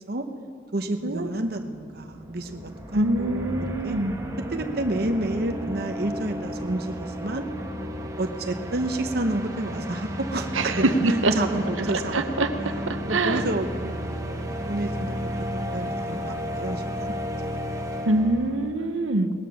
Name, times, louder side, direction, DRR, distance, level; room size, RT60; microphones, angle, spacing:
voice 1, 0.7-4.0 4.5-7.5 8.2-10.8 11.3-12.5 12.7-15.3 15.7-17.2 17.8-17.9, right 1 dB, 50° right, 5 dB, 0.9 m, -30 dB
sound 1, 0.9-1.0 1.2-18.6, equal, 15° right, 1.2 m, -33 dB
voice 2, 2.9-4.1 10.5-11.6 12.1-13.4 18.0-19.4, right 2 dB, 85° right, 8 dB, 1.0 m, -24 dB
19.5 x 11.5 x 6.4 m, 2.2 s
head